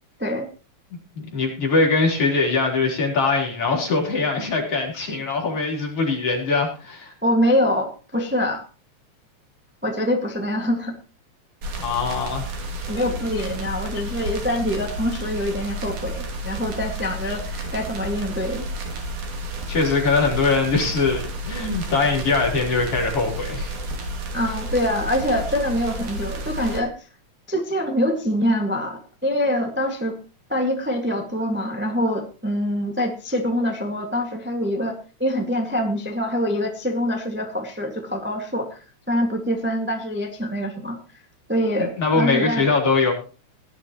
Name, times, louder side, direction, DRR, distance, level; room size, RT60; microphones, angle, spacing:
voice 1, 1.1-7.1 8.1-8.2 11.8-12.5 19.7-23.7 41.8-43.1, left 4 dB, 50° left, -1 dB, 4.9 m, -22 dB
voice 2, 7.2-8.6 9.8-10.9 12.9-18.6 24.3-27.1 27.5-30.2 30.5-41.2 41.5-42.6, equal, 5° right, 2 dB, 1.2 m, -25 dB
sound 1, 11.6-26.8, right 1 dB, 80° right, 4.1 m, -31 dB
18.5 x 11.5 x 3.0 m, 0.36 s
omnidirectional pair, 3.5 m